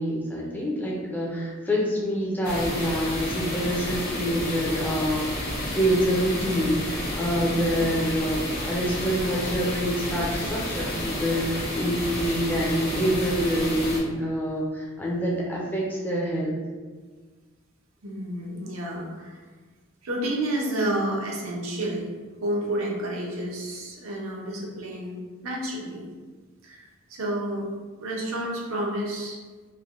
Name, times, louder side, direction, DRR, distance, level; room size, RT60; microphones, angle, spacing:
voice 1, 0.0-16.6, equal, 10° left, -4 dB, 0.4 m, -26 dB
sound 1, 2.4-14.0, left 1 dB, 50° left, 1.0 m, -31 dB
voice 2, 18.0-19.4 20.0-22.1 22.4-25.1 25.4-26.0 26.6-27.7 28.0-29.4, right 1 dB, 80° right, -2 dB, 0.6 m, -30 dB
3.2 x 2.1 x 2.4 m, 1.4 s
head